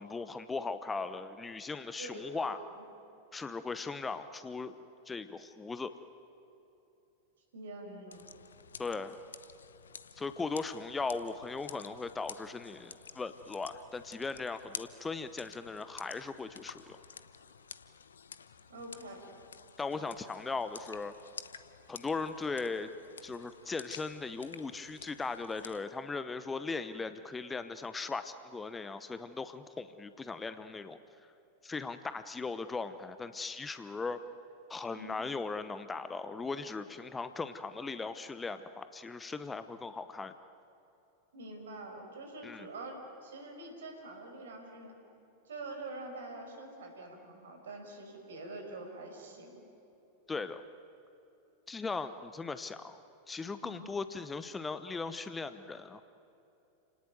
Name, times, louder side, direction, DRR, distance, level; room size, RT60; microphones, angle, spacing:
voice 1, 0.0-2.6 3.3-4.7 5.1-5.9 8.8-9.2 10.2-17.0 19.8-21.1 21.9-22.9 23.2-31.0 31.6-34.2 34.7-40.3 42.4-42.7 50.3-50.6 51.7-53.0 53.3-56.0, left 4 dB, 15° left, 11 dB, 1.0 m, -38 dB
voice 2, 2.0-2.6 7.5-8.3 18.7-19.2 34.9-35.2 41.3-44.9 45.5-49.6 53.6-53.9, right 2 dB, 65° right, 4 dB, 5.5 m, -45 dB
sound 1, 8.1-25.8, left 6 dB, 70° left, 0.9 m, -51 dB
30.0 x 19.0 x 9.4 m, 2.9 s
figure-of-eight pair, 90°, 0 cm